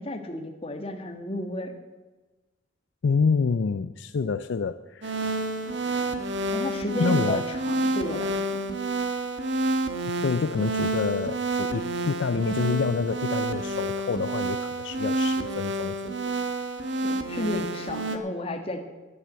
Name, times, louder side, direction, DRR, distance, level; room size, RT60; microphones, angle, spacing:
voice 1, 0.0-1.8 6.5-7.4 7.7-8.6 17.0-18.8, left 1 dB, 30° left, 5 dB, 1.5 m, -32 dB
voice 2, 3.0-5.1 7.0-7.5 10.2-16.3, left 5 dB, 60° left, 12 dB, 0.4 m, -27 dB
sound 1, 5.0-18.2, right 2 dB, 60° right, 1.3 m, -29 dB
11.0 x 10.0 x 8.1 m, 1.2 s
head